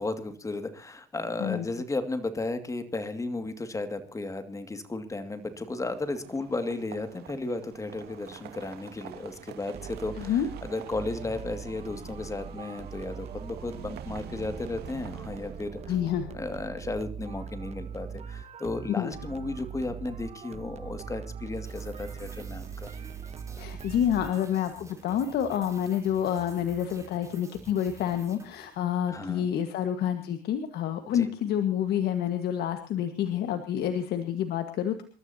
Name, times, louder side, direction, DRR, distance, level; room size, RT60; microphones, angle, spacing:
voice 1, 0.0-15.9 16.3-22.9 29.1-29.5 31.1-31.3, left 2 dB, 20° left, 9 dB, 2.2 m, -34 dB
sound 1, 5.4-16.2, right 9 dB, 75° right, 2.1 m, -47 dB
sound 2, 9.7-24.7, right 7 dB, 40° right, 1.1 m, -41 dB
voice 2, 10.2-10.5 15.9-16.3 18.9-19.1 23.6-35.0, left 9 dB, 70° left, 7 dB, 1.7 m, -28 dB
sound 3, 21.5-29.1, right 3 dB, 20° right, 3.6 m, -50 dB
27.5 x 13.0 x 2.8 m, 0.37 s
cardioid pair, 110°, 17 cm